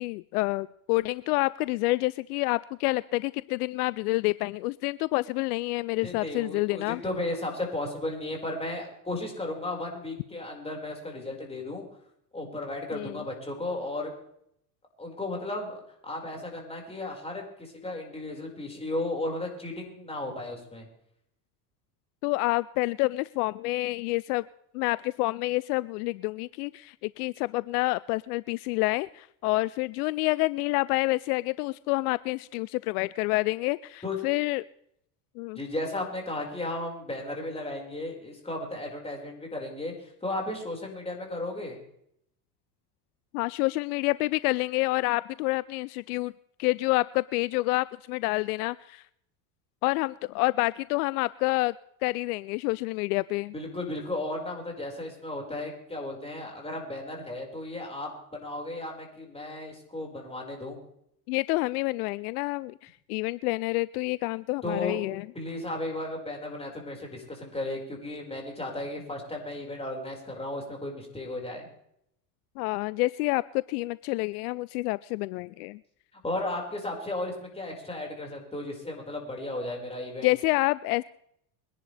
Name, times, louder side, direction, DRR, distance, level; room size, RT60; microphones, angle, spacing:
voice 1, 0.0-7.0 12.9-13.2 22.2-24.4 24.7-34.6 35.4-35.6 43.3-46.3 46.6-49.0 49.8-51.7 52.0-53.5 61.3-65.2 72.6-75.8 80.2-81.0, left 22 dB, 70° left, 18 dB, 0.5 m, -28 dB
voice 2, 6.0-11.8 12.3-14.1 15.0-20.9 34.0-34.2 35.5-41.8 53.5-60.8 64.6-65.0 65.3-71.7 76.2-80.3, left 2 dB, 10° left, 0 dB, 5.0 m, -35 dB
23.0 x 11.0 x 3.4 m, 0.73 s
hypercardioid pair, 90°, 47 cm